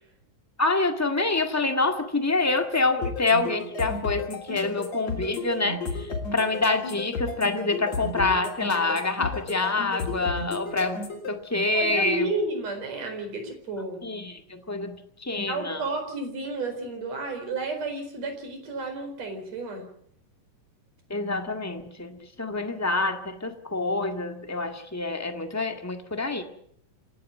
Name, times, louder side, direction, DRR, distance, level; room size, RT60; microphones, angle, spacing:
voice 1, 0.6-12.3 14.0-15.9 21.1-26.4, left 3 dB, 10° left, 5 dB, 0.9 m, -27 dB
sound 1, 3.0-11.3, left 4 dB, 50° left, 4.7 m, -33 dB
voice 2, 11.7-14.1 15.4-19.9, right 2 dB, 50° right, 5 dB, 5.7 m, -31 dB
28.0 x 12.0 x 9.4 m, 0.68 s
omnidirectional pair, 3.9 m